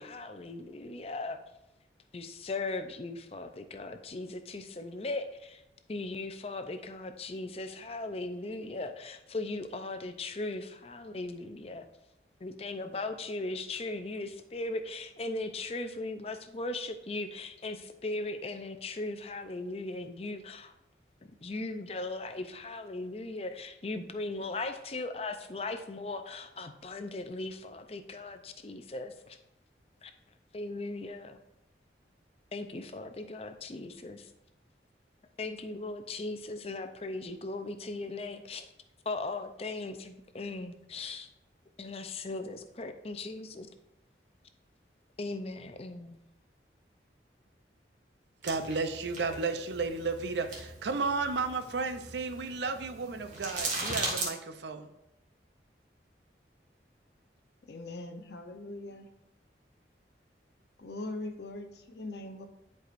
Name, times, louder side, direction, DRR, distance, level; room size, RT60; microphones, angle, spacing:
voice 1, 0.0-1.4 2.1-5.6 5.9-11.9 12.4-20.7 21.2-29.4 30.0-30.1 30.5-31.4 32.5-34.3 35.4-38.7 39.1-41.3 41.8-43.7 45.2-46.2, left 2 dB, 35° left, 8 dB, 0.5 m, -38 dB
sound 1, 48.4-54.3, right 3 dB, 45° right, 1.7 m, -39 dB
voice 2, 48.4-54.9, right 4 dB, 75° right, 8 dB, 0.6 m, -33 dB
voice 3, 57.7-59.1 60.8-62.5, left 2 dB, 70° left, 6 dB, 0.8 m, -41 dB
10.5 x 4.7 x 2.6 m, 0.86 s
head